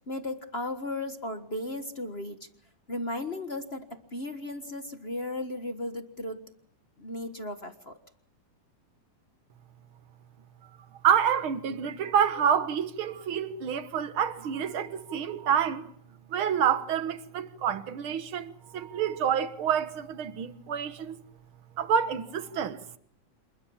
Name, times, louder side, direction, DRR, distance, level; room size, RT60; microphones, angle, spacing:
voice 1, 0.0-2.5 2.9-6.4 7.0-8.0, left 1 dB, 45° left, 0.8 m, -35 dB
voice 2, 11.0-15.9 16.3-21.2 21.8-22.8, right 8 dB, 50° right, 1.8 m, -28 dB
27.5 x 22.0 x 7.3 m
omnidirectional pair, 3.6 m